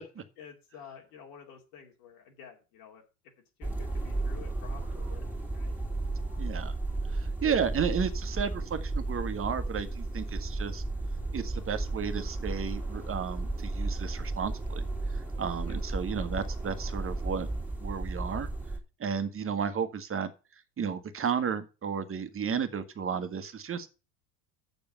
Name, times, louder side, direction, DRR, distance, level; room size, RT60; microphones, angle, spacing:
voice 1, 0.4-3.0 3.6-5.3 5.5-5.7 15.7-15.8 19.2-19.4, left 7 dB, 70° left, 1 dB, 2.6 m, -50 dB
sound 1, 3.6-18.8, right 2 dB, 5° right, 2.5 m, -34 dB
voice 2, 6.4-6.7 7.1-10.8 11.3-14.8 15.1-17.5 17.8-18.5 19.0-20.3 20.8-23.9, right 6 dB, 30° right, 10 dB, 1.5 m, -33 dB
7.0 x 6.6 x 6.7 m, 0.31 s
hypercardioid pair, 75°, 44 cm